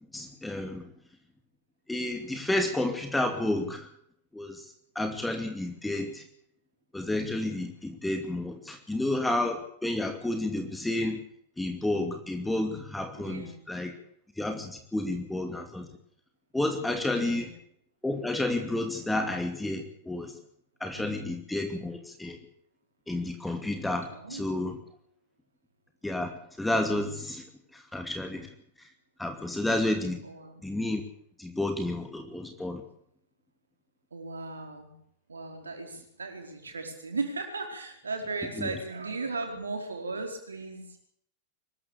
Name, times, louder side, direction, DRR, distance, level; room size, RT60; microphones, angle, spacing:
voice 1, 0.1-0.8 1.9-3.9 4.3-4.7 4.9-6.2 6.9-11.2 11.6-13.9 14.4-15.9 16.5-17.5 18.0-20.3 20.8-22.4 23.1-24.8 26.0-26.3 26.6-27.4 27.7-28.5 29.2-30.2 30.6-31.0 31.4-32.8 38.6-38.7, left 1 dB, 5° left, 5 dB, 2.5 m, -30 dB
voice 2, 13.2-13.5 17.1-17.5 20.9-21.3 24.1-24.5 30.2-30.6 34.1-34.9 35.3-41.0, right 3 dB, 75° right, 4 dB, 4.8 m, -37 dB
23.5 x 14.0 x 8.4 m, 0.68 s
figure-of-eight pair, 90°, 0 cm